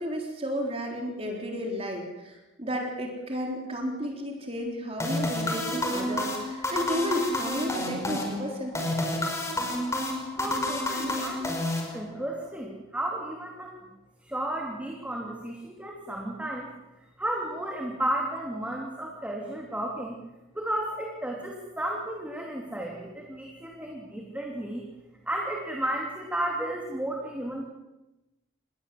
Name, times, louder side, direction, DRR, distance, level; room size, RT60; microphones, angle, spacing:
voice 1, 0.0-9.2, equal, 30° right, 1 dB, 4.0 m, -32 dB
sound 1, 5.0-12.4, left 1 dB, 15° left, 5.2 m, -30 dB
voice 2, 10.4-11.5 11.9-13.7 14.2-16.7 17.2-20.2 20.5-24.8 25.3-27.6, right 1 dB, 5° right, -1 dB, 3.1 m, -33 dB
29.0 x 21.0 x 7.8 m, 1.0 s
head